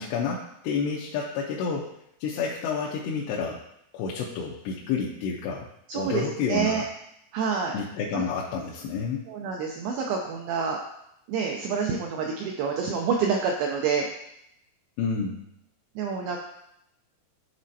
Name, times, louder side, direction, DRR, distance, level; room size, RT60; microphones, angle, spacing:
voice 1, 0.0-1.9 2.2-3.6 3.9-5.7 5.9-6.8 7.7-9.2 15.0-15.4, left 5 dB, 80° left, -4 dB, 2.8 m, -29 dB
voice 2, 5.9-6.2 6.5-6.8 7.3-7.8 8.1-8.2 9.3-10.8 11.3-14.1 16.0-16.4, right 6 dB, 85° right, 0 dB, 2.1 m, -27 dB
11.5 x 4.2 x 2.7 m, 0.78 s
omnidirectional pair, 4.9 m